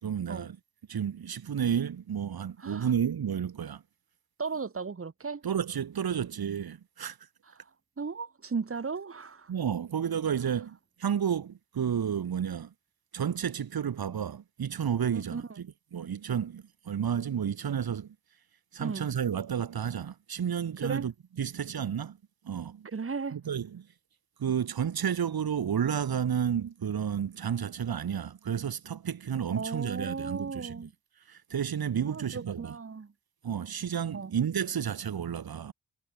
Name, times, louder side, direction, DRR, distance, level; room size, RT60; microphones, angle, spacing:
voice 1, 0.0-0.6 0.9-3.8 5.4-7.2 9.5-12.7 13.1-18.1 18.7-21.1 21.4-22.2 22.4-22.9 23.3-23.9 24.4-30.8 31.3-32.7 33.4-35.7, right 8 dB, 90° right, 4.8 m, -31 dB
voice 2, 2.6-2.9 4.4-5.4 7.4-7.7 8.0-9.5 15.1-15.6 18.8-19.1 20.8-21.1 22.8-23.4 29.5-30.9 32.0-33.1 34.1-34.3, right 5 dB, 40° right, 3.9 m, -36 dB
wide cardioid pair, 145°, 35 cm